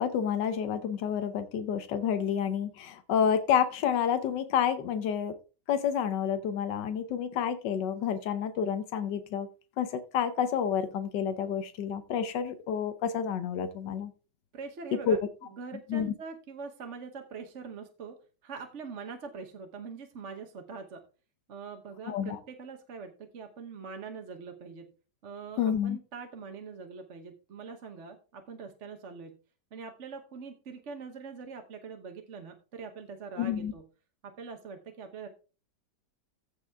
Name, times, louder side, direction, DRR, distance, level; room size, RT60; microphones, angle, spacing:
voice 1, 0.0-5.3 5.7-9.5 9.8-14.1 15.1-15.2 15.9-16.1 22.1-22.4 25.6-26.0 33.4-33.7, left 8 dB, 85° left, 9 dB, 1.5 m, -29 dB
voice 2, 14.5-18.2 18.4-21.0 21.5-24.9 25.2-29.4 29.7-33.9 34.2-35.3, right 5 dB, 45° right, 5 dB, 1.2 m, -43 dB
15.0 x 5.5 x 3.5 m, 0.34 s
omnidirectional pair, 1.9 m